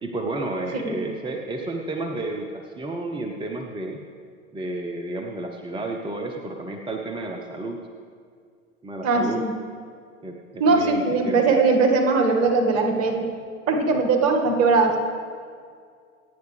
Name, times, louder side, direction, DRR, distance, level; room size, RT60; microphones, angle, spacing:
voice 1, 0.0-4.0 4.5-7.8 8.8-9.4 10.2-11.4, right 2 dB, 15° right, 2 dB, 1.0 m, -31 dB
voice 2, 9.0-9.5 10.6-13.3 13.7-15.0, right 4 dB, 40° right, 3 dB, 2.1 m, -20 dB
26.0 x 9.5 x 3.4 m, 2.2 s
figure-of-eight pair, 85°, 38 cm